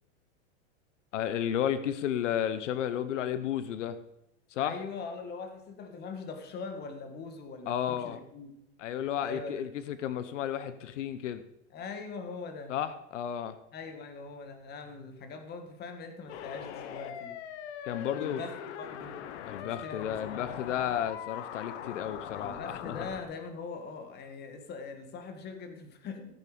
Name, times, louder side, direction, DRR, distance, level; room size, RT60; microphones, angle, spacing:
voice 1, 1.1-4.0 4.5-4.8 7.7-8.2 8.8-11.4 12.7-13.6 17.8-18.4 19.5-23.1, left 10 dB, 85° left, 13 dB, 1.0 m, -32 dB
voice 2, 4.6-8.5 9.2-9.6 11.7-12.7 13.7-17.4 18.2-19.2 19.6-20.6 22.3-26.4, left 4 dB, 25° left, 7 dB, 1.8 m, -42 dB
sound 1, 16.3-23.2, left 9 dB, 65° left, 1.3 m, -41 dB
15.0 x 8.6 x 5.1 m, 0.83 s
supercardioid pair, 145°, 36 cm